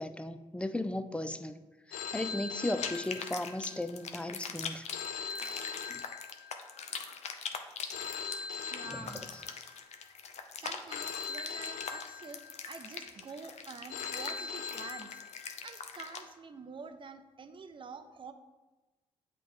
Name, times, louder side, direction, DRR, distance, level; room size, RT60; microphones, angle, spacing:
voice 1, 0.0-1.5 1.9-4.9 5.9-6.0 8.8-9.4, left 1 dB, 10° left, 10 dB, 0.5 m, -36 dB
Telephone, 1.9-3.8 4.9-6.8 7.9-9.8 10.9-12.8 13.9-15.8, left 6 dB, 90° left, 0.4 m, -41 dB
sound 1, 2.8-16.2, left 6 dB, 55° left, 0.7 m, -42 dB
voice 2, 8.4-9.2 10.6-15.2 15.6-18.3, right 5 dB, 40° right, 9 dB, 0.6 m, -47 dB
7.9 x 3.0 x 4.3 m, 1.2 s
supercardioid pair, 55°, 13 cm